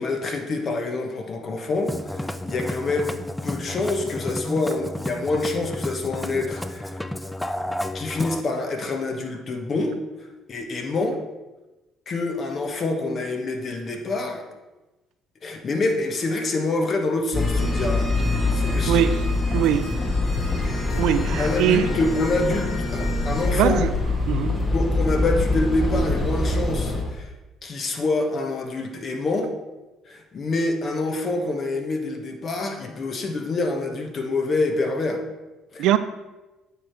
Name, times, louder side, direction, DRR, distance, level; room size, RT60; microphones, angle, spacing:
voice 1, 0.0-3.2 3.4-7.0 7.9-9.9 10.5-11.2 12.1-14.4 15.4-19.2 21.4-23.8 24.7-27.3 27.6-29.5 30.0-35.2 35.7-36.0, left 2 dB, 45° left, 4 dB, 1.1 m, -26 dB
Musical instrument, 1.8-8.4, left 1 dB, 10° left, 0.4 m, -31 dB
sound 1, 17.3-27.0, left 2 dB, 30° left, 1.4 m, -24 dB
voice 2, 18.8-19.2 19.5-19.9 21.0-21.9 23.5-23.9 24.3-24.6 35.8-36.0, right 11 dB, 70° right, 12 dB, 0.3 m, -21 dB
8.7 x 3.4 x 4.5 m, 1.1 s
hypercardioid pair, 55°, 0 cm